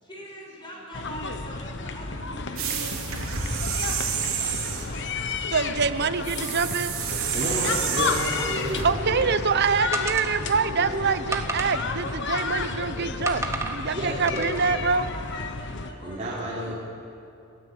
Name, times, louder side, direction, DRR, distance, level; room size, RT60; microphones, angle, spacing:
voice 1, 0.0-5.1 7.4-7.9 8.4-8.9 13.9-16.8, equal, 20° left, -2 dB, 5.5 m, -43 dB
sound 1, 0.9-15.9, left 4 dB, 55° left, 1.1 m, -32 dB
voice 2, 2.3-3.0 4.2-4.6 5.0-5.5 6.7-6.9 7.2-9.6 10.4-11.0 13.9-14.7 16.0-16.8, equal, 35° right, -7 dB, 3.4 m, -34 dB
sound 2, 2.6-5.0 6.2-8.9, right 7 dB, 80° right, 3.3 m, -29 dB
voice 3, 5.5-6.9 8.8-15.1, right 5 dB, 50° right, 12 dB, 0.9 m, -25 dB
sound 3, 9.9-10.7 11.3-12.8 13.3-13.8 14.3-14.7, right 2 dB, 15° right, 1.6 m, -33 dB
29.5 x 13.5 x 8.1 m, 2.7 s
head